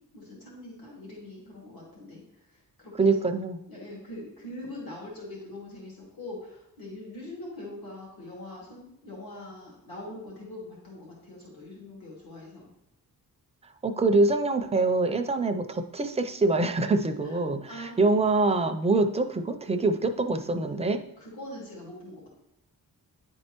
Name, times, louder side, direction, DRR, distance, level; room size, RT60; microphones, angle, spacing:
voice 1, 0.1-2.2 2.8-3.1 3.7-12.7 17.3-17.4 17.7-18.0 21.2-22.3, left 1 dB, 70° left, -5 dB, 2.4 m, -42 dB
voice 2, 3.0-3.6 13.8-21.0, right 3 dB, 15° right, 6 dB, 0.4 m, -25 dB
9.7 x 4.4 x 2.9 m, 0.86 s
wide cardioid pair, 155°, 37 cm